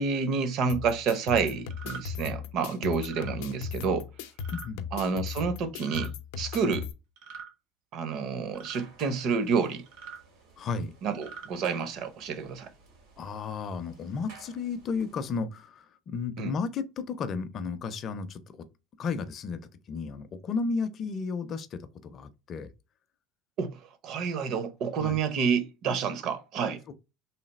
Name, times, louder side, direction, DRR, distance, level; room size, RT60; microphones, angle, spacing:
voice 1, 0.0-4.1 4.9-6.9 7.9-9.9 11.0-12.7 16.4-16.5 23.6-26.8, right 5 dB, 45° right, 0.6 m, -29 dB
sound 1, 0.7-6.9, left 6 dB, 85° left, 0.5 m, -37 dB
sound 2, 1.7-2.0 3.0-3.3 4.4-4.7 5.7-6.1 7.2-7.5 8.5-8.8 9.9-10.2 11.1-11.5, right 6 dB, 70° right, 1.4 m, -43 dB
voice 2, 4.5-4.9 10.6-10.9 13.2-18.4 19.0-19.6 19.9-22.7 25.0-25.2 26.9-27.0, left 5 dB, 30° left, 0.4 m, -33 dB
sound 3, 8.0-15.4, right 4 dB, 90° right, 1.7 m, -55 dB
3.2 x 2.6 x 4.0 m
cardioid pair, 160°, 0 cm